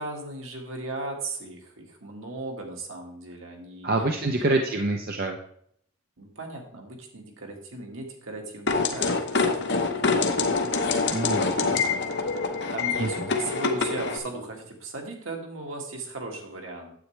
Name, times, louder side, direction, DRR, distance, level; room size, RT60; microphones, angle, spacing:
voice 1, 0.0-4.5 6.2-10.1 11.8-12.2 12.7-16.9, right 2 dB, 70° right, 1 dB, 1.9 m, -37 dB
voice 2, 3.8-5.4 11.1-11.8 13.0-13.1, right 2 dB, 45° right, 3 dB, 0.6 m, -26 dB
sound 1, 8.7-14.2, left 4 dB, 50° left, 0.9 m, -25 dB
9.5 x 8.2 x 3.3 m, 0.67 s
head